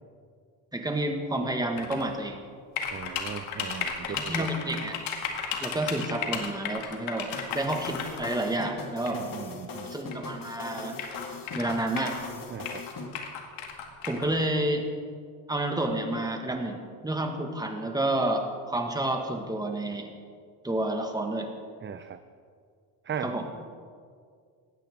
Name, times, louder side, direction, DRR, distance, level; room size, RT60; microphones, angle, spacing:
voice 1, 0.7-2.4 4.1-5.0 5.6-9.2 9.9-11.0 11.5-12.2 14.0-14.8 15.5-20.1 20.6-21.5 23.2-23.5, right 1 dB, 10° right, 3 dB, 1.8 m, -30 dB
sound 1, 1.8-2.0 2.8-8.3 9.1-9.2 10.1-10.2 10.4-10.5 10.9-12.3 12.6-14.3, left 7 dB, 85° left, 1.9 m, -34 dB
voice 2, 2.9-4.5 9.1-9.9 12.5-12.8 21.8-22.2 23.0-23.3, right 7 dB, 25° right, 10 dB, 0.6 m, -37 dB
sound 2, 7.3-13.1, left 4 dB, 45° left, 1.9 m, -40 dB
18.5 x 13.0 x 3.7 m, 2.1 s
cardioid pair, 95°, 45 cm